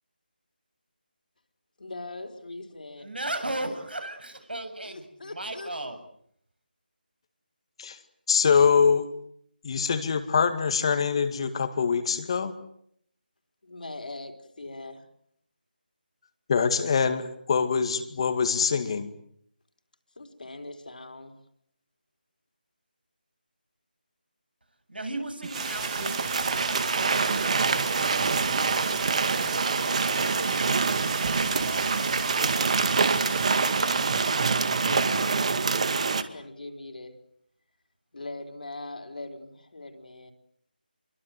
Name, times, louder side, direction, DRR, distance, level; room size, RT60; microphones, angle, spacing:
voice 1, 1.8-3.1 4.9-5.7 13.6-15.0 20.2-21.4 34.8-35.5 36.0-37.3 38.1-40.3, left 2 dB, 60° left, 5 dB, 4.2 m, -41 dB
voice 2, 3.0-6.0 24.9-30.8 31.1-34.1, right 1 dB, 75° right, 8 dB, 7.6 m, -38 dB
voice 3, 8.3-9.2 9.6-12.6 16.5-19.1, left 6 dB, 35° left, 9 dB, 2.1 m, -24 dB
sound 1, 25.4-36.2, right 4 dB, 40° right, 2.1 m, -25 dB
sound 2, 25.5-35.0, right 6 dB, 10° right, 2.7 m, -39 dB
29.0 x 23.5 x 7.8 m, 0.70 s
figure-of-eight pair, 160°, 5 cm